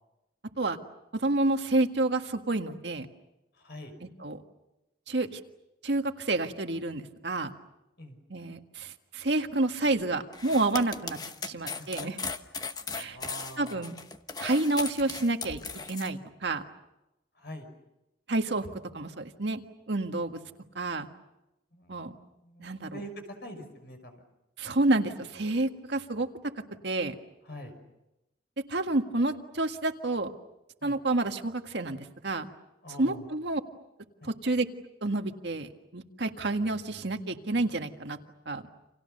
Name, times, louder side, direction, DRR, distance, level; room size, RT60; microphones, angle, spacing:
voice 1, 1.1-3.1 4.0-4.4 5.1-5.4 5.8-7.5 8.3-11.2 11.4-12.1 12.9-13.2 13.6-14.0 14.4-15.6 15.9-16.6 18.3-19.6 19.9-20.4 20.7-21.1 21.9-22.2 22.6-23.0 24.6-26.3 26.8-27.1 28.7-30.3 30.8-32.0 32.2-32.5 33.0-33.6 34.2-34.6 35.0-38.2 38.4-38.7, right 2 dB, 70° right, 6 dB, 1.7 m, -29 dB
voice 2, 3.6-3.9 8.0-8.2 11.5-12.1 13.0-13.9 17.3-17.7 21.7-22.7 22.9-24.2 27.4-27.8 30.8-31.0 32.8-33.3 34.2-34.3, equal, 60° left, 6 dB, 5.9 m, -45 dB
sound 1, 10.3-16.1, left 4 dB, 20° left, 1.1 m, -37 dB
30.0 x 27.5 x 6.7 m, 0.94 s
head